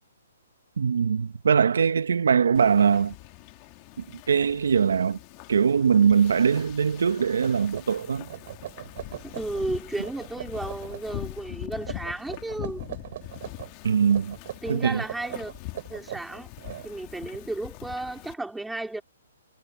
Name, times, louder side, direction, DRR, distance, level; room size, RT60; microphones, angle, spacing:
voice 1, 0.8-3.2 4.0-5.2 5.5-8.3 13.8-14.4 14.7-15.0, right 6 dB, 75° right, 0.7 m, -22 dB
Wind / Ocean, 2.5-18.3, left 20 dB, 25° left, 1.9 m, -43 dB
sound 1, 7.0-7.1 7.4-9.7 10.0-11.2 11.8-13.7 14.1-17.4, right 12 dB, 40° right, 4.4 m, -40 dB
voice 2, 9.2-12.8 14.6-15.5 15.9-16.5 16.8-19.0, right 2 dB, 5° right, 3.5 m, -33 dB
hypercardioid pair, 170°, 0 cm